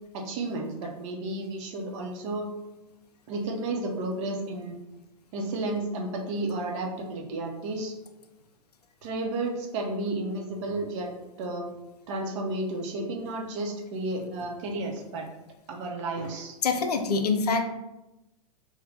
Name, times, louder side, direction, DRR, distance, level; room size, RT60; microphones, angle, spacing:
voice 1, 0.1-2.5 3.3-4.8 5.3-7.9 9.0-11.1 11.4-11.7 12.1-15.3 15.7-16.5, right 2 dB, 50° right, 1 dB, 0.6 m, -32 dB
voice 2, 16.6-17.6, left 4 dB, 85° left, 6 dB, 0.4 m, -25 dB
2.6 x 2.1 x 3.3 m, 0.97 s
hypercardioid pair, 105°, 20 cm